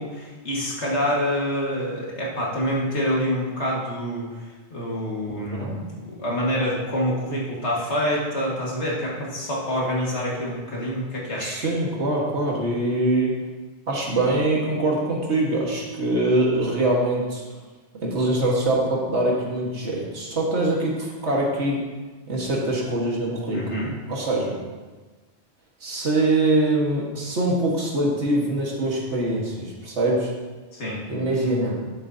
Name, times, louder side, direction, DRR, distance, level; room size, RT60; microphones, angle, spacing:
voice 1, 0.0-4.5 4.7-11.7 23.5-24.0 30.7-31.0, equal, 80° left, -4 dB, 2.2 m, -26 dB
voice 2, 11.4-13.4 13.9-17.4 18.0-21.8 22.3-23.8 24.1-24.6 25.8-30.3 31.1-31.8, right 2 dB, 85° right, -2 dB, 1.9 m, -23 dB
11.5 x 7.0 x 2.8 m, 1.3 s
omnidirectional pair, 1.1 m